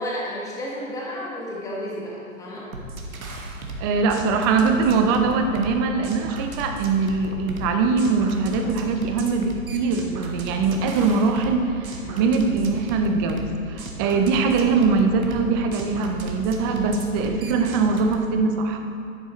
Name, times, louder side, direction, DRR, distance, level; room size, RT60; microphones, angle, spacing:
voice 1, 0.0-2.7 12.0-12.3, equal, 10° left, -5 dB, 1.4 m, -32 dB
sound 1, 2.7-18.1, right 2 dB, 85° right, 1.5 m, -35 dB
voice 2, 3.8-18.8, right 4 dB, 20° right, 5 dB, 0.4 m, -22 dB
10.5 x 9.1 x 3.1 m, 2.7 s
hypercardioid pair, 120°, 41 cm